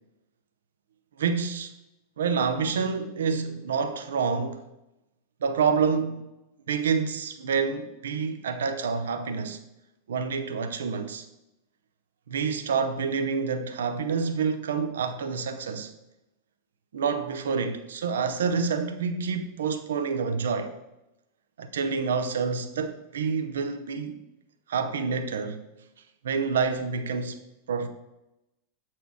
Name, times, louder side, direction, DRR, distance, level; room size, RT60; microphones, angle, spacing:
voice 1, 1.2-1.7 2.2-4.6 5.4-6.2 6.7-9.6 10.1-11.3 12.3-15.9 16.9-20.7 21.6-24.2 24.7-25.7 26.2-27.4 27.7-27.9, right 5 dB, 65° right, 0.7 m, -28 dB
7.9 x 4.3 x 4.9 m
figure-of-eight pair, 90°, 0 cm